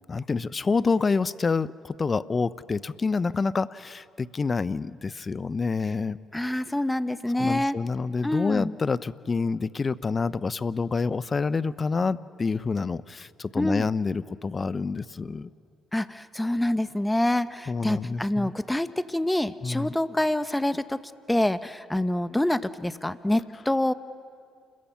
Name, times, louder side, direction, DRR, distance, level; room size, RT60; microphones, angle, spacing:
voice 1, 0.1-6.2 7.4-15.5 17.7-18.5 19.6-19.9, left 4 dB, 35° left, 17 dB, 0.7 m, -27 dB
voice 2, 6.3-7.7 8.2-8.7 13.6-13.9 15.9-21.0 21.3-23.9, left 1 dB, 10° left, 13 dB, 0.9 m, -26 dB
29.0 x 21.5 x 5.8 m, 2.4 s
supercardioid pair, 60°, 0 cm